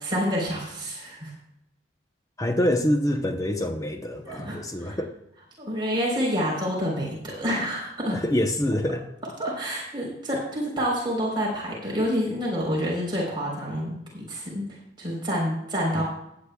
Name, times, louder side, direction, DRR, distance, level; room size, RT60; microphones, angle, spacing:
voice 1, 0.0-1.3 4.2-5.0 5.6-8.2 9.4-14.6 15.0-16.0, equal, 25° right, -3 dB, 3.9 m, -28 dB
voice 2, 2.4-5.1 8.1-9.1 15.9-16.0, left 1 dB, 20° left, 5 dB, 0.8 m, -26 dB
16.5 x 10.5 x 2.3 m, 0.80 s
head